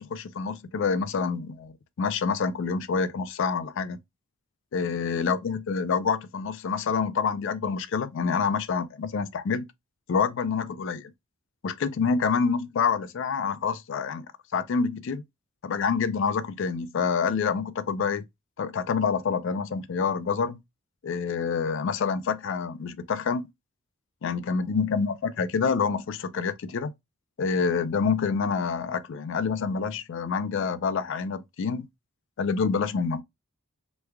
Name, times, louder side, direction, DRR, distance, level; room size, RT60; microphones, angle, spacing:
voice 1, 0.0-4.0 4.7-9.7 10.1-11.1 11.6-14.3 14.5-15.2 15.6-18.3 18.6-20.6 21.0-23.5 24.2-26.9 27.4-31.9 32.4-33.2, left 5 dB, 60° left, 0.4 m, -27 dB
3.1 x 2.2 x 3.4 m
head